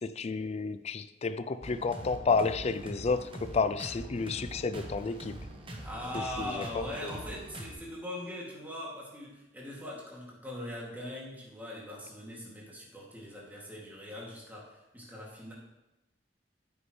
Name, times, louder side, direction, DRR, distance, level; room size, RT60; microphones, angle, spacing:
voice 1, 0.0-5.4 6.1-7.2, left 4 dB, 35° left, 0.4 m, -31 dB
sound 1, 1.6-7.7, right 1 dB, 30° right, 1.0 m, -43 dB
voice 2, 5.7-15.5, left 1 dB, 10° right, 2.4 m, -41 dB
9.5 x 8.2 x 3.2 m
head